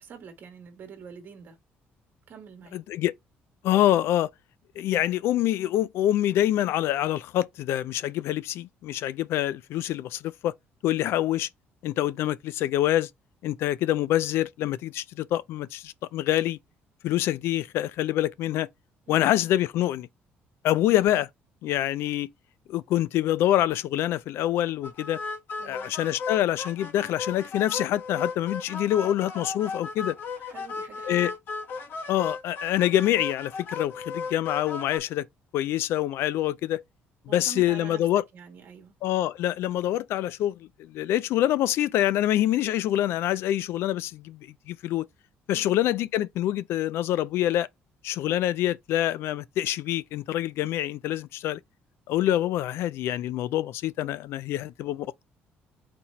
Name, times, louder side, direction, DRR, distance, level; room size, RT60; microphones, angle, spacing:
voice 1, 0.0-1.6 2.3-2.8 19.1-19.4 25.6-25.9 30.4-31.3 37.3-38.1 38.3-38.9 45.5-45.8, right 6 dB, 50° right, 1.5 m, -46 dB
voice 2, 2.7-3.1 3.6-4.3 4.8-10.6 10.8-11.5 11.8-13.1 13.4-16.6 17.0-18.7 19.1-20.1 20.6-21.3 21.6-22.3 22.7-25.2 25.6-30.2 31.1-31.3 32.1-35.3 35.5-36.8 37.3-38.2 39.0-45.1 45.5-47.7 48.0-51.6 52.1-55.2, left 13 dB, 75° left, 0.3 m, -26 dB
sound 1, 24.8-35.0, left 4 dB, 55° left, 0.9 m, -36 dB
4.2 x 2.8 x 4.3 m
cardioid pair, 130°, 4 cm